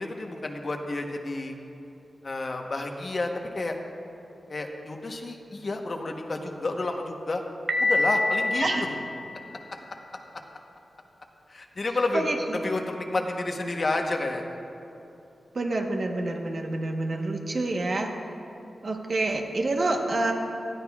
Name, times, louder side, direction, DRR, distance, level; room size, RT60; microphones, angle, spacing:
voice 1, 0.0-1.6 2.2-3.8 4.5-7.4 7.8-8.6 11.5-14.6, left 2 dB, 45° left, 3 dB, 1.0 m, -30 dB
Piano, 7.7-9.6, left 2 dB, 30° right, 0.7 m, -26 dB
voice 2, 12.1-12.6 15.5-18.1 18.8-20.3, right 2 dB, 50° right, 2 dB, 1.1 m, -27 dB
19.0 x 13.5 x 2.4 m, 2.8 s
wide cardioid pair, 115°, 0 cm